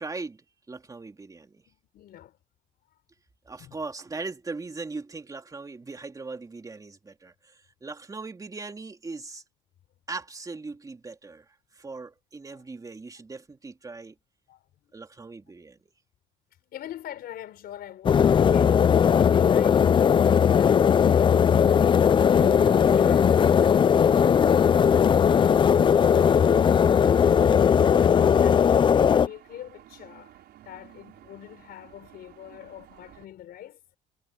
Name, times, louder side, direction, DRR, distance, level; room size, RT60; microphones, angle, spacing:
voice 1, 0.0-1.6 3.5-9.4 10.1-11.4 11.7-14.1 14.9-15.8, right 3 dB, 20° right, 3.0 m, -39 dB
voice 2, 1.7-2.4 3.6-3.8 12.5-12.6 14.5-14.7 15.2-15.3 16.7-27.4 27.7-30.4 30.6-33.8, left 12 dB, 65° left, 4.8 m, -44 dB
sound 1, 18.0-29.3, left 7 dB, 30° left, 0.4 m, -19 dB
sound 2, 22.4-33.3, right 13 dB, 70° right, 5.4 m, -49 dB
cardioid pair, 110°, 17 cm